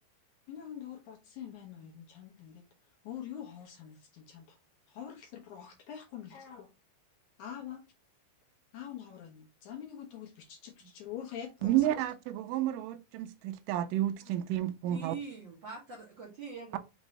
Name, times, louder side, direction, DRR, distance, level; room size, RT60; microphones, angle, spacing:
voice 1, 0.5-2.6 3.0-4.5 4.9-6.7 7.4-7.8 8.7-12.0, left 9 dB, 70° left, 1.9 m, -45 dB
voice 2, 11.6-15.1, right 13 dB, 85° right, 1.8 m, -31 dB
voice 3, 14.9-16.8, right 5 dB, 70° right, 1.1 m, -43 dB
5.9 x 2.7 x 3.1 m
omnidirectional pair, 4.4 m